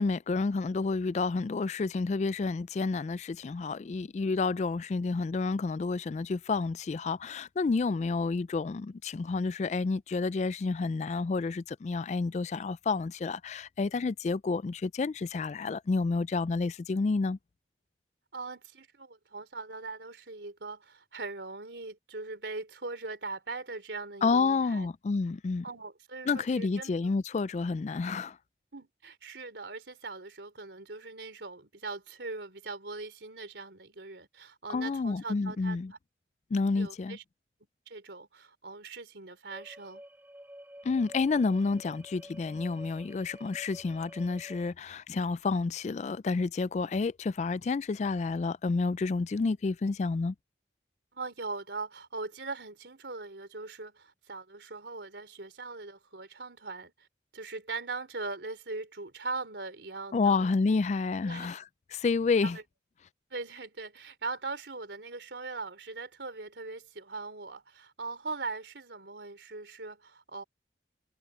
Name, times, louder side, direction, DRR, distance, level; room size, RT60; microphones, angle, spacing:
voice 1, 0.0-17.4 24.2-25.6 26.3-28.4 34.7-35.9 36.5-37.2 40.8-50.3 60.1-61.6 61.9-62.6, left 4 dB, 40° left, 0.3 m, -29 dB
voice 2, 18.3-24.9 25.6-26.9 28.7-36.0 36.8-37.2 37.9-40.0 51.1-57.1 57.3-60.5 61.2-61.5 62.4-62.6 63.3-70.4, right 3 dB, 85° right, 3.6 m, -40 dB
sound 1, 39.5-44.7, equal, 10° right, 2.3 m, -50 dB
head